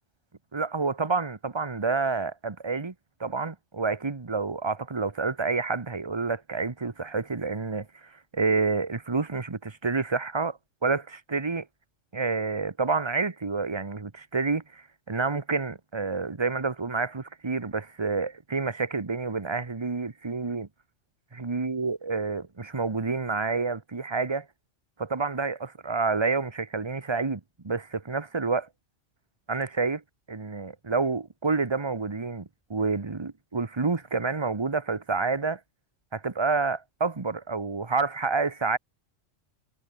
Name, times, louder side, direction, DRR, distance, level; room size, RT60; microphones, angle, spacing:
voice 1, 0.5-2.9 3.2-11.7 12.1-20.7 21.3-24.5 25.0-28.7 29.5-30.0 30.3-35.6 36.1-38.8, right 4 dB, 25° right, 1.1 m, -29 dB
omnidirectional pair, 1.3 m